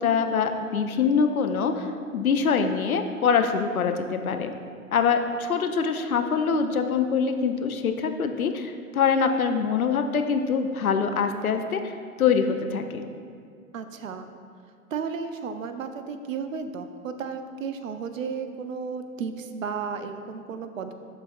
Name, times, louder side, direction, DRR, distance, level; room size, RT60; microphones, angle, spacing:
voice 1, 0.0-1.9 2.1-4.5 4.9-11.9 12.2-13.0, left 6 dB, 80° left, 6 dB, 0.6 m, -24 dB
voice 2, 13.7-14.3 14.9-20.9, right 5 dB, 65° right, 9 dB, 0.5 m, -33 dB
12.0 x 4.0 x 2.4 m, 2.3 s
figure-of-eight pair, 100°, 42 cm